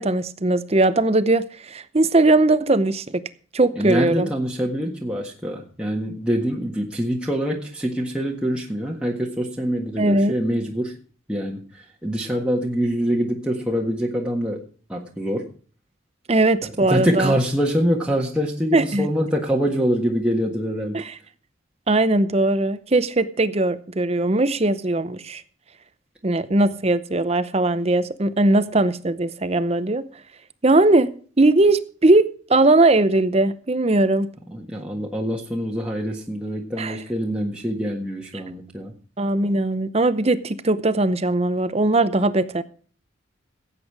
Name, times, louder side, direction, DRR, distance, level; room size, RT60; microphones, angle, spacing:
voice 1, 0.0-3.2 3.5-4.3 10.0-10.3 16.3-17.3 18.7-19.1 20.9-21.0 21.9-25.4 26.2-30.0 30.6-31.1 31.4-34.3 36.8-37.0 38.3-38.4 39.2-42.6, right 2 dB, 30° right, 13 dB, 0.7 m, -19 dB
voice 2, 3.7-10.9 11.3-14.6 14.9-15.5 16.9-21.0 34.5-38.9, equal, 5° right, -2 dB, 1.5 m, -25 dB
16.0 x 8.4 x 4.8 m, 0.42 s
head